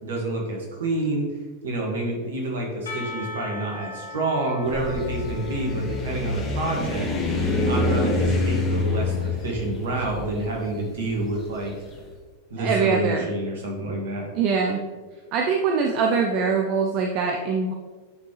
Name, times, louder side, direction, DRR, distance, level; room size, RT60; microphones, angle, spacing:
voice 1, 0.0-1.2 1.6-7.1 7.7-11.7 12.5-14.3, right 2 dB, 60° right, -1 dB, 1.8 m, -28 dB
Percussion / Church bell, 2.9-7.9, left 3 dB, 65° left, 1.0 m, -40 dB
sound 1, 4.6-11.8, left 2 dB, 25° left, 1.4 m, -26 dB
voice 2, 12.6-13.3 14.3-14.8 15.3-17.7, right 5 dB, 40° right, 2 dB, 0.5 m, -23 dB
9.4 x 4.4 x 3.2 m, 1.4 s
figure-of-eight pair, 90°, 0 cm